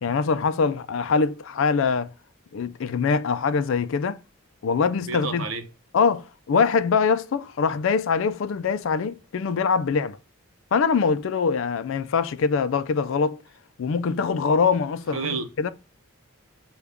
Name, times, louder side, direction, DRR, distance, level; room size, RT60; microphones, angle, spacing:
voice 1, 0.0-2.1 2.5-4.2 4.6-5.4 5.9-10.2 10.7-13.4 13.8-15.7, left 5 dB, 60° left, 0.4 m, -23 dB
voice 2, 5.1-5.6 15.1-15.7, right 4 dB, 70° right, 0.7 m, -30 dB
6.7 x 2.3 x 3.5 m
head